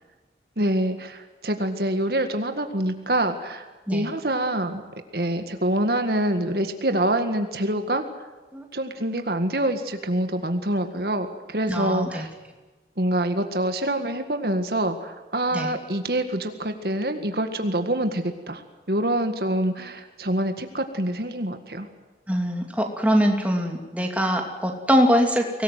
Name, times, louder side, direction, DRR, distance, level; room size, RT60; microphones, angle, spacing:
voice 1, 0.6-3.6 3.9-4.8 5.1-8.0 8.7-12.3 13.0-18.6 18.9-21.9, right 1 dB, 60° right, 7 dB, 1.9 m, -26 dB
voice 2, 11.7-12.3 15.5-15.7 22.3-25.6, equal, 10° right, 2 dB, 2.8 m, -23 dB
24.0 x 19.0 x 9.3 m, 1.2 s
head